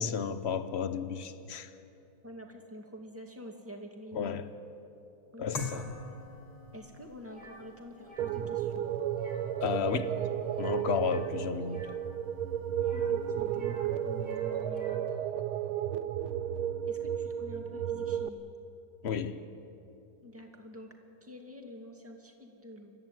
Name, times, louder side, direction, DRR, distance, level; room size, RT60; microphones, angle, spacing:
voice 1, 0.0-1.7 4.1-4.5 5.4-5.9 9.6-10.1 10.6-11.9 19.0-19.4, left 7 dB, 60° left, 11 dB, 0.7 m, -32 dB
voice 2, 2.2-4.5 5.3-5.7 6.7-8.8 12.9-13.7 14.1-15.1 16.9-18.4 20.2-22.9, left 1 dB, 5° right, 2 dB, 2.2 m, -47 dB
sound 1, 5.5-14.4, left 4 dB, 85° left, 3.2 m, -47 dB
sound 2, 7.3-7.6 8.0-8.3 9.1-9.5 9.8-10.2 10.5-12.0 12.7-13.9 14.1-15.1, right 1 dB, 35° right, 3.8 m, -52 dB
sound 3, 8.2-18.3, right 9 dB, 85° right, 1.6 m, -33 dB
29.5 x 14.0 x 9.1 m, 2.9 s
omnidirectional pair, 2.2 m